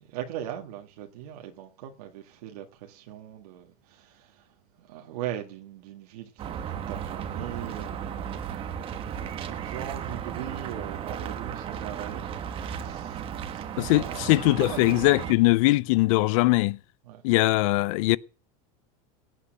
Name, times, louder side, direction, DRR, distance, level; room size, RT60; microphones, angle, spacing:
voice 1, 0.0-4.5 4.8-14.3 14.6-15.1 17.1-17.2, right 11 dB, 80° right, 1.9 m, -40 dB
sound 1, 6.4-15.3, right 8 dB, 30° right, 1.2 m, -35 dB
voice 2, 13.8-16.8 17.2-18.2, left 20 dB, 60° left, 0.6 m, -21 dB
17.0 x 8.5 x 6.5 m
supercardioid pair, 160°, 19 cm